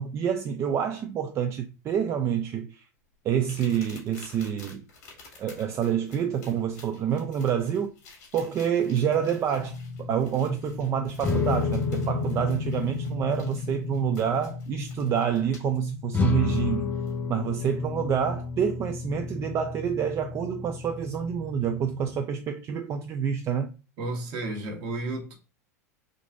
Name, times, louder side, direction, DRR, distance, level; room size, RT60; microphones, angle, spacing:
voice 1, 0.0-2.8 3.2-4.8 5.4-7.9 8.3-16.9 17.3-23.7, right 8 dB, 35° right, 0.3 m, -27 dB
sound 1, 3.4-15.8 17.1-17.2 17.7-17.9, left 4 dB, 75° left, 1.5 m, -52 dB
sound 2, 9.6-22.1, left 4 dB, 20° left, 0.8 m, -32 dB
voice 2, 24.0-25.4, right 2 dB, 50° right, 1.1 m, -32 dB
3.7 x 2.5 x 2.4 m
hypercardioid pair, 100°, 9 cm